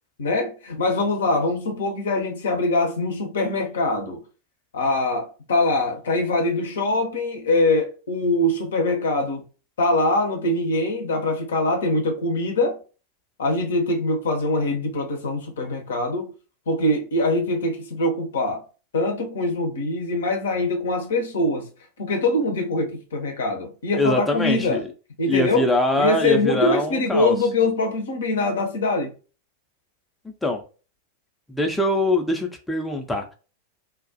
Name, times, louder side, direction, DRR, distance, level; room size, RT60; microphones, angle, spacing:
voice 1, 0.2-4.2 4.7-9.4 9.8-12.8 13.4-16.3 16.7-18.6 18.9-21.7 22.0-24.8 25.2-25.7 26.0-29.1, left 2 dB, 65° left, 0.6 m, -23 dB
voice 2, 23.9-24.9 25.2-27.3 30.2-30.6 31.5-33.3, left 1 dB, 5° left, 0.5 m, -23 dB
2.3 x 2.1 x 2.6 m
figure-of-eight pair, 90°, 0 cm